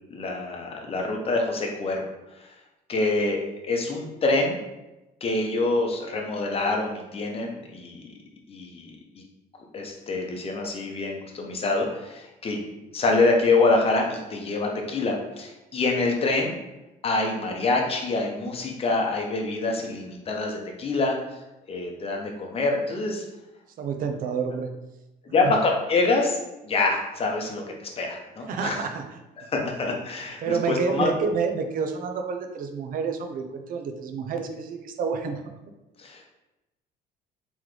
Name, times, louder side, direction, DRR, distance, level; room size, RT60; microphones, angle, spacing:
voice 1, 0.1-2.0 2.4-2.5 2.9-3.4 3.6-4.6 5.2-8.1 8.5-9.2 9.7-16.5 17.0-21.2 21.7-23.2 25.2-28.8 29.5-31.1 36.0-36.2, left 3 dB, 35° left, 1 dB, 0.8 m, -26 dB
voice 2, 23.8-24.7 25.4-25.5 28.5-29.2 30.4-35.5, right 5 dB, 55° right, 6 dB, 0.5 m, -29 dB
3.7 x 3.1 x 3.2 m, 0.99 s
cardioid pair, 110°, 17 cm